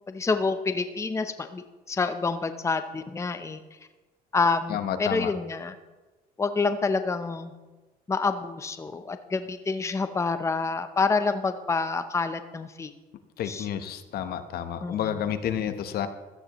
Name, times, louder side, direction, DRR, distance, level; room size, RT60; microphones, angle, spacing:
voice 1, 0.1-3.6 4.3-5.7 6.4-7.5 8.1-12.9 13.4-13.7 14.8-15.1, left 4 dB, 15° left, 9 dB, 0.7 m, -28 dB
voice 2, 4.7-5.3 13.4-16.1, left 9 dB, 65° left, 10 dB, 1.0 m, -30 dB
16.0 x 12.5 x 3.1 m, 1.2 s
cardioid pair, 110°, 17 cm